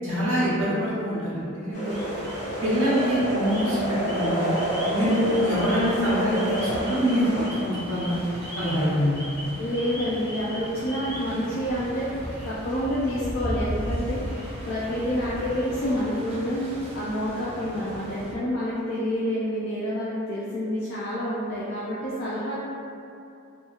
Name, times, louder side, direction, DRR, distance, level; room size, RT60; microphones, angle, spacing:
voice 1, 0.0-2.0 2.6-4.5 4.9-8.1 8.6-9.1, equal, 65° right, -10 dB, 0.8 m, -24 dB
sound 1, 1.7-7.5, equal, 85° left, 1.0 m, -29 dB
sound 2, 1.9-2.6 2.9-12.0 12.3-16.0, equal, 20° left, 0.7 m, -42 dB
sound 3, 1.9-18.4, equal, 30° right, 0.4 m, -37 dB
voice 2, 9.6-12.1 12.4-22.6, equal, 45° left, -8 dB, 0.3 m, -28 dB
2.7 x 2.6 x 2.3 m, 2.6 s
head